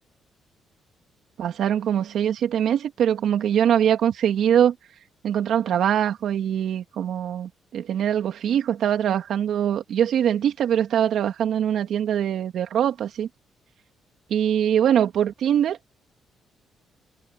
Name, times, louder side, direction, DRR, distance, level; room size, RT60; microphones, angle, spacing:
voice 1, 1.4-4.8 5.2-13.3 14.3-15.8, right 9 dB, 70° right, 2.6 m, -22 dB
cardioid pair, 90°, 0 cm